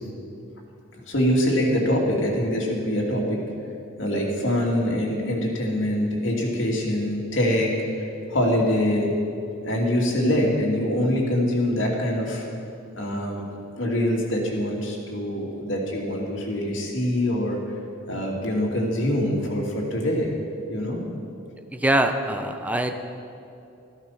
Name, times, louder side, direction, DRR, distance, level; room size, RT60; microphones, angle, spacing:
voice 1, 1.1-3.4 4.0-7.7 8.3-9.1 9.6-12.5 12.9-13.5 13.7-17.6 18.1-20.3 20.7-21.0, left 1 dB, 65° left, -2 dB, 2.8 m, -24 dB
voice 2, 21.8-23.0, right 1 dB, 10° right, 6 dB, 0.7 m, -23 dB
14.0 x 13.0 x 5.9 m, 2.7 s
head